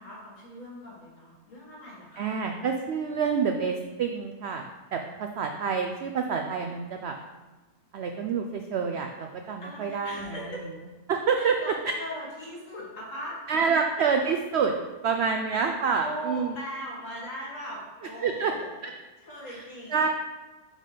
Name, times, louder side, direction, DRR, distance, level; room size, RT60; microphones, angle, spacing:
voice 1, 0.0-2.4 9.6-10.7 11.4-13.4 16.0-18.9 19.2-20.1, equal, 55° left, -3 dB, 2.0 m, -39 dB
voice 2, 2.2-4.6 4.9-7.1 7.9-10.4 11.1-11.6 13.5-14.7 15.0-16.5 18.2-18.5 18.8-18.9 19.5-19.6 19.9-20.1, right 6 dB, 80° right, 4 dB, 0.5 m, -27 dB
5.5 x 5.1 x 4.9 m, 1.2 s
omnidirectional pair, 1.7 m